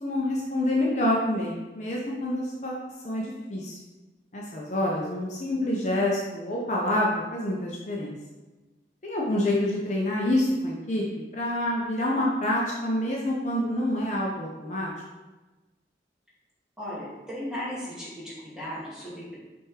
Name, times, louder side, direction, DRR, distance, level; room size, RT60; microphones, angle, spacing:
voice 1, 0.0-3.8 4.3-8.1 9.0-11.0 11.3-14.9, left 1 dB, 40° left, -3 dB, 0.8 m, -27 dB
voice 2, 16.8-19.4, equal, 5° right, -8 dB, 1.9 m, -36 dB
5.9 x 3.6 x 4.9 m, 1.2 s
head